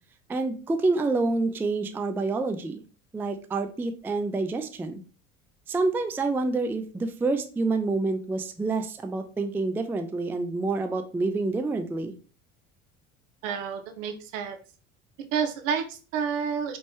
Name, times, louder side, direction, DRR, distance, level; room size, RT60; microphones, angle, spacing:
voice 1, 0.3-2.8 3.1-5.0 5.7-12.1, right 3 dB, 5° right, 7 dB, 0.4 m, -27 dB
voice 2, 13.4-14.6 15.3-16.8, right 7 dB, 65° right, 7 dB, 0.9 m, -29 dB
5.1 x 3.3 x 2.9 m, 0.36 s
figure-of-eight pair, 60°, 41 cm